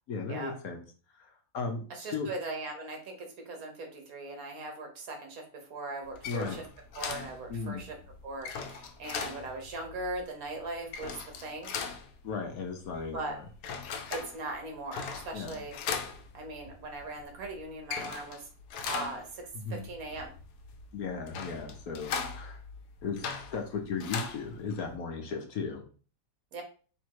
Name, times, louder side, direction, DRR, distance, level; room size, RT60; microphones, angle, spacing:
voice 1, 0.1-0.8 1.1-2.3 6.2-6.6 7.5-7.8 12.2-13.5 15.3-15.6 19.5-19.9 20.9-22.6 23.0-23.3 23.5-25.8, left 4 dB, 65° left, 3 dB, 1.3 m, -36 dB
voice 2, 1.9-6.5 6.9-8.0 8.2-11.7 13.1-13.4 14.1-15.7 16.3-18.5 18.8-20.3 26.5-26.6, right 2 dB, 60° right, 3 dB, 1.5 m, -39 dB
sound 1, 6.0-25.0, left 6 dB, 85° left, 1.2 m, -40 dB
3.6 x 3.1 x 4.6 m, 0.39 s
omnidirectional pair, 1.7 m